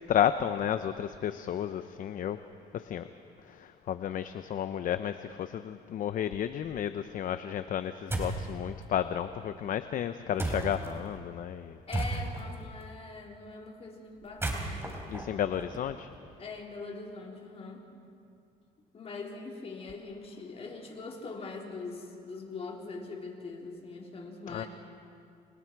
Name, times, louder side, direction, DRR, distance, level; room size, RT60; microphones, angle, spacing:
voice 1, 0.1-2.4 2.7-3.1 3.5-11.8 15.1-16.1 24.5-24.6, left 9 dB, 50° left, 11 dB, 0.8 m, -32 dB
sound 1, 8.1-8.5 10.4-10.9 11.9-12.5 14.2-16.2, right 2 dB, 15° right, 3.9 m, -34 dB
voice 2, 11.9-15.4 16.4-17.8 18.9-24.7, left 3 dB, 35° left, 0 dB, 4.0 m, -42 dB
29.5 x 28.0 x 4.7 m, 2.5 s
cardioid pair, 110°, 17 cm